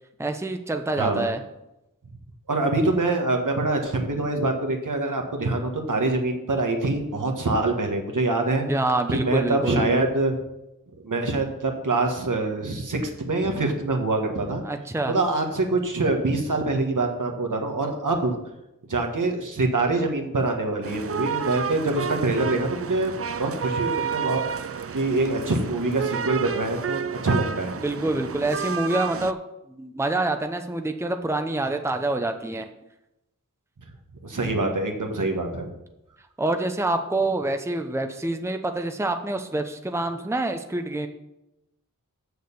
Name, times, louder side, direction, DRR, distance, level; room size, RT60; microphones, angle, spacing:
voice 1, 0.2-1.4 8.7-10.0 14.6-15.1 27.8-29.4 29.8-32.7 36.4-41.1, right 2 dB, 10° right, 6 dB, 0.8 m, -26 dB
voice 2, 1.0-1.3 2.5-8.6 9.1-10.4 11.0-14.6 15.1-18.4 18.9-24.4 24.9-27.7 34.2-35.7, right 2 dB, 65° right, 3 dB, 1.6 m, -25 dB
sound 1, 20.8-29.3, right 7 dB, 45° right, 0.5 m, -31 dB
6.6 x 6.6 x 6.9 m, 0.91 s
cardioid pair, 40°, 34 cm